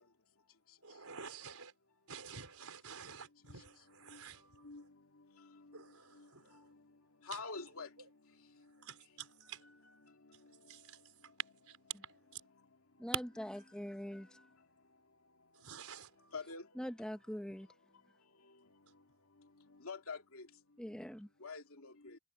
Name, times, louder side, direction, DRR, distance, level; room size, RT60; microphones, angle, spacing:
voice 1, 0.8-1.7 2.1-4.4 5.7-6.6 8.8-9.6 10.7-11.0 11.7-11.8 12.1-12.4 15.6-16.1, right 6 dB, 80° right, 4.5 m, -51 dB
voice 2, 7.3-7.9 16.3-16.7 19.8-20.5 21.4-22.2, left 4 dB, 70° left, 2.7 m, -45 dB
voice 3, 13.0-14.4 16.8-17.7 20.8-21.3, equal, 5° left, 0.8 m, -43 dB
head